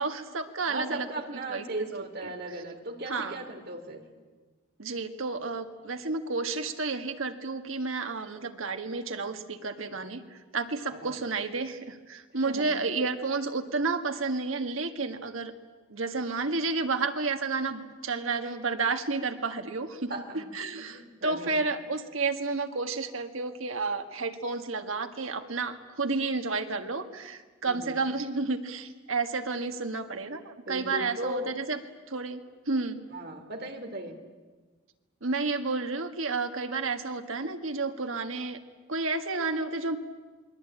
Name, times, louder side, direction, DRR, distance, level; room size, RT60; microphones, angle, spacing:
voice 1, 0.0-1.1 1.5-1.6 1.9-2.0 3.1-3.4 4.8-15.5 15.9-31.8 32.1-33.0 35.2-38.6 38.9-40.0, right 3 dB, 90° right, 7 dB, 1.8 m, -31 dB
voice 2, 0.7-4.0 10.9-11.2 12.4-12.7 20.1-20.5 20.8-21.7 27.6-28.0 30.7-31.5 33.1-34.2, right 1 dB, 50° right, 5 dB, 2.8 m, -37 dB
28.5 x 21.5 x 8.8 m, 1.3 s
head